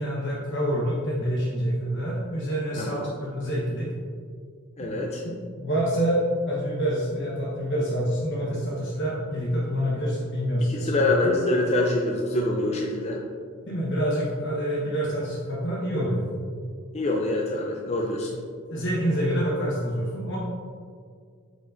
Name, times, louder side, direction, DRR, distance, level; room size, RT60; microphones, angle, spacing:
voice 1, 0.0-3.9 4.8-5.0 5.2-11.3 13.6-16.2 18.7-20.4, equal, 60° left, -6 dB, 1.1 m, -27 dB
voice 2, 2.8-3.1 4.8-5.2 10.7-13.2 16.9-18.4, left 2 dB, 30° left, 0 dB, 0.5 m, -25 dB
7.7 x 5.1 x 2.6 m, 2.1 s
head